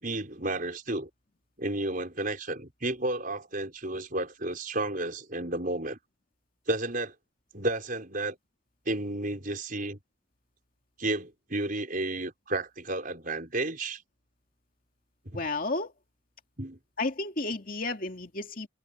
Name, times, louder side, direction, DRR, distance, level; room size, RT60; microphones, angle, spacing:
voice 1, 0.0-1.1 1.6-6.0 6.7-7.1 7.5-8.4 8.9-10.0 11.0-14.0 15.3-15.4 16.6-16.8, right 2 dB, 40° right, 5.8 m, -32 dB
voice 2, 15.3-15.9 17.0-18.7, left 2 dB, 45° left, 2.5 m, -32 dB
head